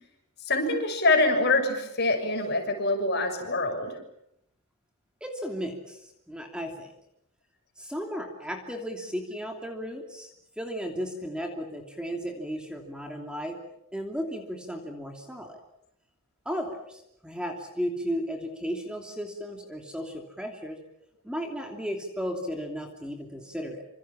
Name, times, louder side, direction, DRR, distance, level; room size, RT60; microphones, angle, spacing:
voice 1, 0.4-4.0, left 2 dB, 50° left, 5 dB, 6.8 m, -25 dB
voice 2, 5.2-6.9 7.8-13.6 13.9-15.6 16.4-20.8 21.2-23.8, equal, 5° right, 3 dB, 2.9 m, -35 dB
28.0 x 27.0 x 7.4 m, 0.80 s
head